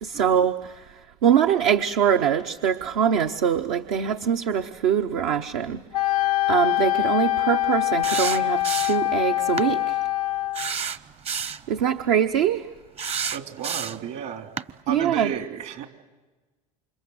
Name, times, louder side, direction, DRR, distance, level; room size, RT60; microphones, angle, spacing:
voice 1, 0.0-0.9 1.2-5.8 6.5-10.0 11.7-12.7 14.9-15.3, right 8 dB, 75° right, 6 dB, 1.0 m, -23 dB
Wind instrument woodwind instrument, 5.9-10.7, left 16 dB, 90° left, 0.8 m, -24 dB
sound 1, 8.0-9.1 9.6-9.7 10.5-11.6 13.0-14.1 14.6-14.7, right 6 dB, 35° right, 0.9 m, -29 dB
voice 2, 13.3-14.5 14.9-15.9, right 9 dB, 60° right, 7 dB, 3.1 m, -32 dB
28.5 x 25.5 x 8.0 m, 1.2 s
hypercardioid pair, 80°, 18 cm